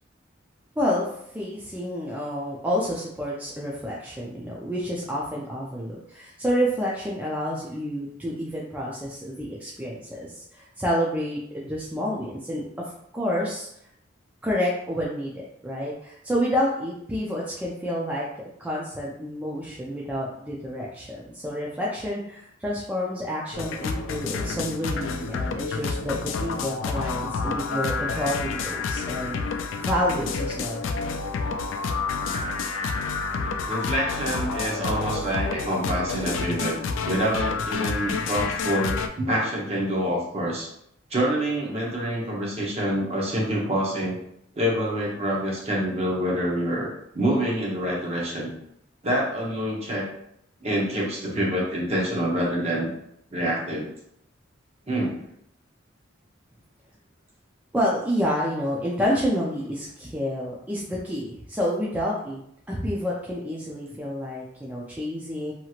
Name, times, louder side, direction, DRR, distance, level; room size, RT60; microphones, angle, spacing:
voice 1, 0.8-1.1 1.3-12.7 13.1-13.7 14.4-18.3 18.6-30.9 57.7-62.4 62.7-65.5, equal, 10° right, -5 dB, 0.4 m, -29 dB
sound 1, 23.5-39.1, left 4 dB, 80° left, 0.3 m, -29 dB
voice 2, 33.7-36.8 37.0-40.7 41.1-44.2 44.5-46.9 47.1-48.5 49.0-50.1 50.6-52.9 53.3-53.9 54.9-55.2, right 1 dB, 35° right, -3 dB, 0.8 m, -26 dB
2.9 x 2.8 x 2.4 m, 0.73 s
head